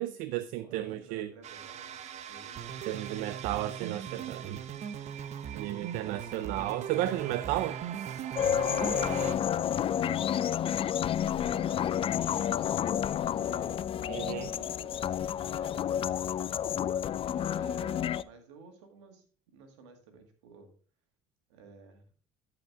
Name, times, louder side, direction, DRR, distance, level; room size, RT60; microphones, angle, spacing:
voice 1, 0.0-1.3 2.9-4.6 5.5-7.8 14.1-14.5, right 14 dB, 70° right, 0.5 m, -33 dB
voice 2, 0.6-2.7 3.7-4.0 9.5-10.5 11.1-12.5 12.9-13.8 14.5-16.1 17.3-20.7 21.5-22.0, right 4 dB, 85° right, 1.9 m, -53 dB
sound 1, 1.4-9.3, right 8 dB, 55° right, 0.9 m, -39 dB
sound 2, 8.4-18.2, left 9 dB, 40° left, 0.4 m, -30 dB
13.0 x 5.0 x 3.5 m
hypercardioid pair, 75°, 14 cm